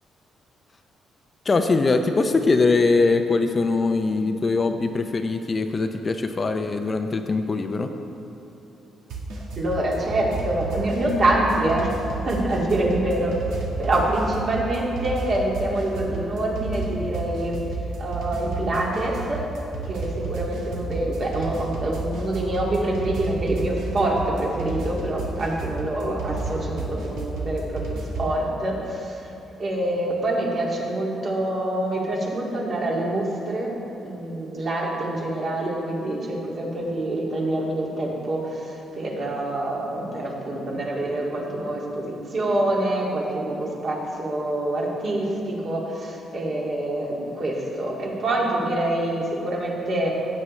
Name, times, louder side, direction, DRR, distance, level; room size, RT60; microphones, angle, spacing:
voice 1, 1.5-7.9, left 3 dB, 30° left, 6 dB, 0.5 m, -22 dB
sound 1, 9.1-28.4, right 3 dB, 90° right, 1.4 m, -31 dB
voice 2, 9.6-11.9 12.2-13.3 13.8-17.6 18.0-19.4 19.8-29.2 29.6-33.7 34.0-50.1, right 1 dB, 45° right, -3 dB, 2.2 m, -26 dB
15.5 x 8.6 x 3.2 m, 2.9 s
cardioid pair, 115°, 0 cm